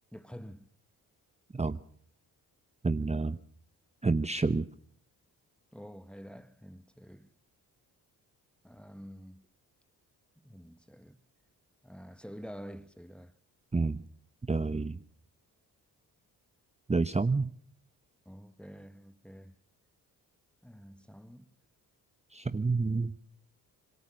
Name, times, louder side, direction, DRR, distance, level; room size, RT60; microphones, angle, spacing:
voice 1, 0.1-0.7 5.7-7.3 8.6-9.5 10.4-11.2 11.8-13.4 18.2-19.6 20.6-21.5, equal, 5° left, 1.4 m, -48 dB
voice 2, 2.8-3.4 4.0-4.7 13.7-14.0 14.5-15.0 16.9-17.5 22.3-23.2, right 3 dB, 15° right, 0.9 m, -29 dB
26.5 x 22.0 x 6.5 m
supercardioid pair, 60°, 39 cm